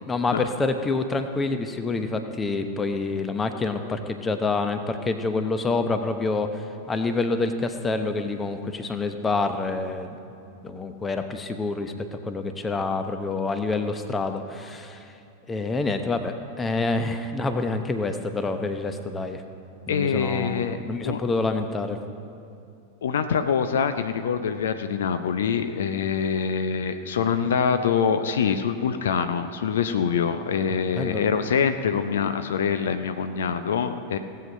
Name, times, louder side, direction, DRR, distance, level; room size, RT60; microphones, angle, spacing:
voice 1, 0.1-10.2 10.6-11.9 12.3-15.1 15.5-19.4 19.9-22.0 30.8-31.2, left 3 dB, 15° left, 8 dB, 0.8 m, -27 dB
voice 2, 19.9-20.8 21.0-21.2 23.0-34.2, left 6 dB, 60° left, 9 dB, 0.5 m, -25 dB
18.0 x 7.8 x 5.4 m, 2.6 s
figure-of-eight pair, 90°, 0 cm